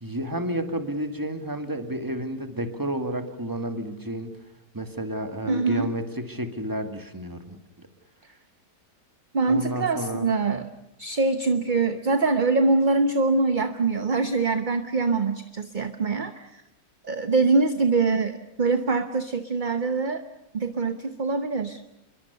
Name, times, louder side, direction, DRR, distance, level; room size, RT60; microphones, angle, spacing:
voice 1, 0.0-4.3 4.7-7.9 9.5-10.3, right 1 dB, 10° right, 7 dB, 1.9 m, -31 dB
voice 2, 5.5-5.9 9.3-10.7 11.0-16.6 17.0-20.2 20.5-21.8, right 3 dB, 35° right, 9 dB, 0.9 m, -24 dB
28.5 x 22.5 x 6.9 m, 0.86 s
omnidirectional pair, 1.8 m